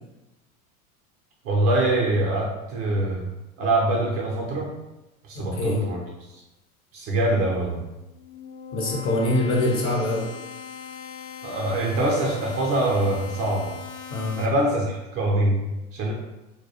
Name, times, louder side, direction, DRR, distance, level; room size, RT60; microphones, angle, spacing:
voice 1, 1.4-3.3 3.6-4.8 5.2-6.0 6.9-7.8 11.4-13.8 14.4-16.1, right 1 dB, 35° right, -2 dB, 0.4 m, -24 dB
voice 2, 5.3-5.8 8.7-10.3 14.1-14.4, left 2 dB, 30° left, -2 dB, 0.6 m, -24 dB
sound 1, 8.0-14.5, left 7 dB, 80° left, 0.6 m, -40 dB
2.2 x 2.0 x 2.8 m, 1.0 s
figure-of-eight pair, 85°, 44 cm